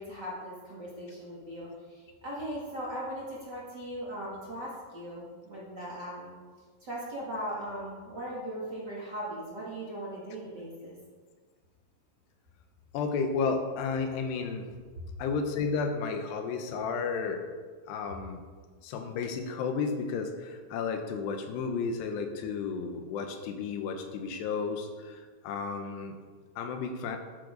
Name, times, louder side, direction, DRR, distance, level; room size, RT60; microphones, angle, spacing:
voice 1, 0.0-6.3 6.8-11.0, equal, 30° right, -6 dB, 2.7 m, -39 dB
voice 2, 12.9-14.8 15.2-17.4 17.9-18.4 18.8-25.2 25.4-26.2 26.6-27.2, left 5 dB, 85° left, 5 dB, 3.2 m, -32 dB
13.0 x 11.0 x 4.0 m, 1.5 s
omnidirectional pair, 4.7 m